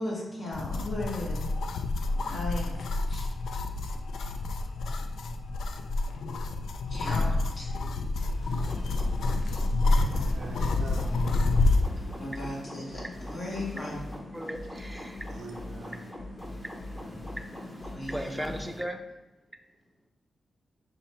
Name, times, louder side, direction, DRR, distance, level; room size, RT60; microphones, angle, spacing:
voice 1, 0.0-1.5 2.2-2.8 3.1-3.2 6.9-7.7 12.2-14.1 17.9-18.1, left 1 dB, 60° left, -5 dB, 1.3 m, -36 dB
sound 1, 0.5-11.9, left 2 dB, 85° left, 0.3 m, -28 dB
voice 2, 1.7-2.4 3.0-7.0 7.4-7.5 7.8-10.4 14.2-15.3 16.6-17.4 18.1-19.0, equal, 5° right, 4 dB, 0.5 m, -43 dB
sound 2, 8.2-18.8, left 1 dB, 35° left, 1.2 m, -44 dB
sound 3, 8.6-18.6, left 1 dB, 15° left, 0.8 m, -44 dB
voice 3, 10.3-11.4 15.3-16.0, right 3 dB, 75° right, 1 dB, 0.5 m, -42 dB
5.4 x 2.1 x 4.3 m, 1.1 s
cardioid pair, 65°, 0 cm